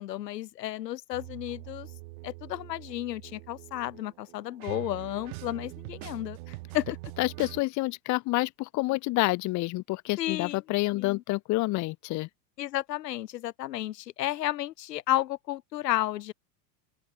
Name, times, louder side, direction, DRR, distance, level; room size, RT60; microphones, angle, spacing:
voice 1, 0.0-1.9 2.2-6.9 10.2-10.6 10.9-11.2 12.6-16.3, left 14 dB, 85° left, 4.1 m, -32 dB
sound 1, 1.1-7.6, right 22 dB, 65° right, 4.8 m, -43 dB
voice 2, 7.2-12.3, left 21 dB, 35° left, 1.3 m, -28 dB
open air
supercardioid pair, 140°, 48 cm